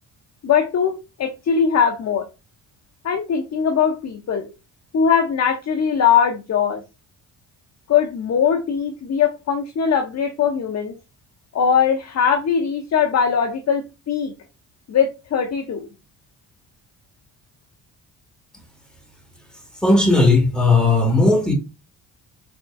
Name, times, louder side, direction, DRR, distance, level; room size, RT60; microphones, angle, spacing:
voice 1, 0.4-0.9 1.2-2.2 3.0-4.5 4.9-6.8 7.9-10.9 11.5-14.3 14.9-15.9, left 7 dB, 40° left, 0.7 m, -20 dB
voice 2, 19.8-21.5, left 2 dB, ahead, 1.4 m, -16 dB
3.8 x 3.5 x 2.3 m
supercardioid pair, 55°, 40 cm